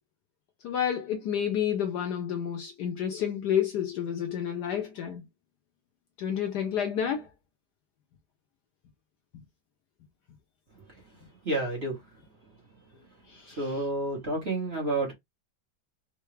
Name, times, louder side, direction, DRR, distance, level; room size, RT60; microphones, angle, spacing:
voice 1, 0.6-5.2 6.2-7.3 13.3-13.7, left 9 dB, 70° left, 1.1 m, -30 dB
voice 2, 11.4-12.0 13.6-15.1, right 2 dB, 40° right, 1.2 m, -29 dB
3.8 x 2.2 x 3.1 m
omnidirectional pair, 2.2 m